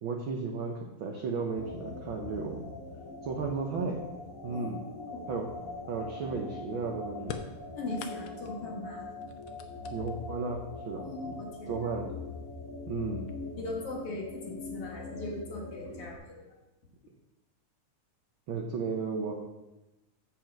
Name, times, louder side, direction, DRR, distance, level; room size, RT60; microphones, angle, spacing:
voice 1, 0.0-2.6 3.2-4.0 4.4-4.9 5.3-5.5 5.9-7.4 9.9-11.1 11.7-12.1 12.9-13.3 15.9-16.0 18.5-19.3, right 4 dB, 80° right, 1 dB, 1.1 m, -34 dB
sound 1, 1.5-16.2, left 3 dB, 30° left, 1.7 m, -42 dB
voice 2, 4.5-5.2 7.8-9.1 11.0-11.7 13.6-16.5, left 2 dB, 55° left, 0 dB, 2.0 m, -39 dB
sound 2, 7.2-8.6 9.2-10.4 11.4-11.5 12.5-12.6 13.1-13.6, left 8 dB, 70° left, 1.7 m, -44 dB
7.7 x 7.5 x 5.2 m, 0.98 s
omnidirectional pair, 3.5 m